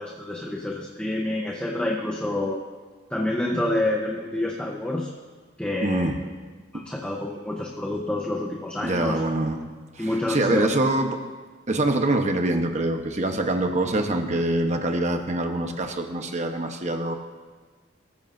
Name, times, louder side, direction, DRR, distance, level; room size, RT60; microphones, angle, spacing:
voice 1, 0.0-2.6 3.1-5.1 5.6-6.1 6.7-9.2 10.0-10.7, left 1 dB, 5° left, -1 dB, 0.9 m, -28 dB
voice 2, 5.8-6.2 6.7-6.8 8.8-9.6 9.9-11.2 11.7-17.1, right 2 dB, 40° right, 5 dB, 1.1 m, -24 dB
20.0 x 14.5 x 2.7 m, 1.4 s
head